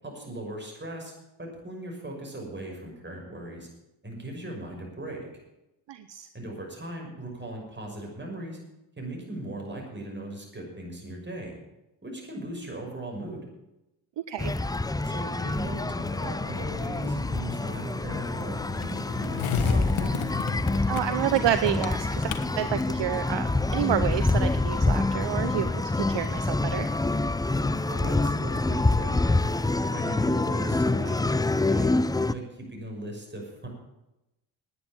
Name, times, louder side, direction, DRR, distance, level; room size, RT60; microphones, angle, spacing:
voice 1, 0.0-1.1 1.4-3.7 4.0-5.3 6.3-8.6 9.0-11.5 12.0-13.4 15.0-20.2 27.9-29.4 29.9-31.9 32.2-33.7, right 1 dB, 20° right, 0 dB, 6.3 m, -38 dB
voice 2, 5.9-6.3 14.3-14.5 20.9-26.9, right 11 dB, 60° right, 11 dB, 0.8 m, -29 dB
sound 1, 14.4-32.3, left 2 dB, 10° left, 0.5 m, -26 dB
Skateboard, 15.5-23.5, left 8 dB, 70° left, 1.3 m, -37 dB
10.0 x 9.6 x 8.7 m, 0.92 s
supercardioid pair, 60°, 48 cm